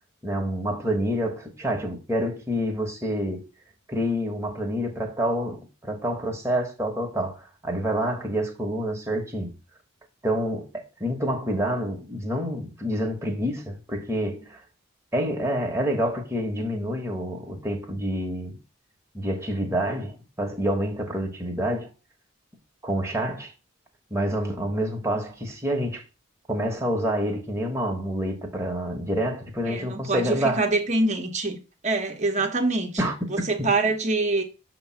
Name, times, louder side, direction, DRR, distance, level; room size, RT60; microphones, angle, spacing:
voice 1, 0.2-3.4 3.9-9.5 10.2-14.6 15.1-18.6 19.1-21.9 22.8-23.5 24.1-26.0 26.5-30.7 33.0-33.1 33.6-33.7, equal, 15° right, 1.2 m, -27 dB
voice 2, 29.7-31.6 31.8-33.0 33.3-34.4, right 2 dB, 35° right, 1.1 m, -25 dB
6.8 x 3.1 x 5.6 m
head